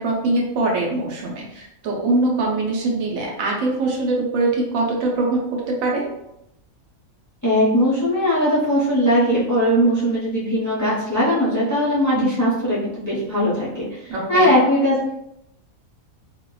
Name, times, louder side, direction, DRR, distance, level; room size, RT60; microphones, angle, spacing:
voice 1, 0.0-5.4 5.7-6.0 12.1-12.3 14.1-14.5, right 2 dB, 75° right, -1 dB, 1.0 m, -22 dB
voice 2, 7.4-15.1, equal, 20° left, -9 dB, 0.4 m, -19 dB
2.7 x 2.1 x 2.3 m, 0.83 s
omnidirectional pair, 1.5 m